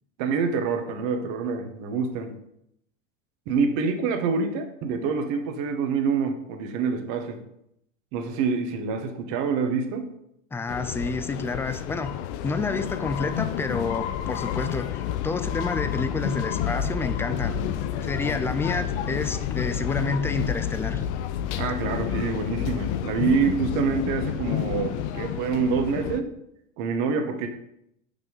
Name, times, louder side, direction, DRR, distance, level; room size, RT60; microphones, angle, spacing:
voice 1, 0.2-2.3 3.5-7.4 8.1-10.1 21.6-26.3 26.8-27.5, right 5 dB, 50° right, 5 dB, 1.5 m, -26 dB
voice 2, 10.5-12.2 12.4-17.5 18.0-21.0, left 3 dB, 5° left, 12 dB, 0.4 m, -29 dB
sound 1, 10.7-26.2, left 10 dB, 60° left, 0.8 m, -29 dB
5.9 x 5.3 x 5.5 m, 0.76 s
hypercardioid pair, 100°, 39 cm